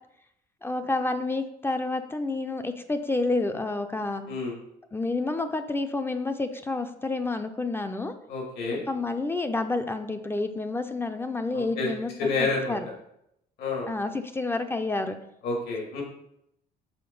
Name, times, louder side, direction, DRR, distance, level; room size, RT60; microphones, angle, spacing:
voice 1, 0.6-4.2 4.9-8.1 8.9-12.1 12.4-12.9 13.9-15.1, left 2 dB, 15° left, 8 dB, 0.5 m, -29 dB
voice 2, 8.3-8.8 11.5-11.9 12.2-12.8 13.6-13.9 15.4-16.0, left 3 dB, 70° left, -1 dB, 2.5 m, -29 dB
5.7 x 3.9 x 5.3 m, 0.78 s
cardioid pair, 110°, 17 cm